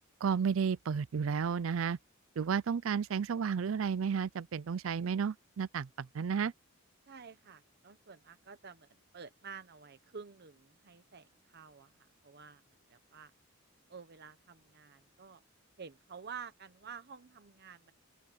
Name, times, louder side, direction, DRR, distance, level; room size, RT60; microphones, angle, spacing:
voice 1, 0.2-2.0 2.4-6.5, right 6 dB, 70° right, 0.4 m, -32 dB
voice 2, 7.1-8.9 9.1-12.6 12.9-13.3 13.9-15.4 15.8-17.9, right 6 dB, 50° right, 0.9 m, -50 dB
open air
head